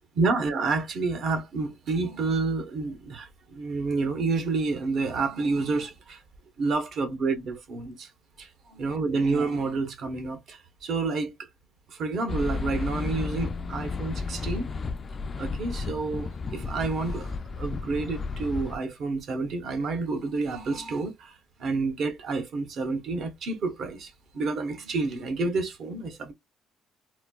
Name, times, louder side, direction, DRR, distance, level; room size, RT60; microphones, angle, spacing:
voice 1, 0.1-6.2 6.6-8.1 8.4-11.5 11.9-14.7 15.4-26.3, right 3 dB, 60° right, 0.9 m, -29 dB
sound 1, 12.3-18.8, left 4 dB, 35° left, 0.3 m, -33 dB
4.2 x 2.2 x 2.3 m
cardioid pair, 105°, 0 cm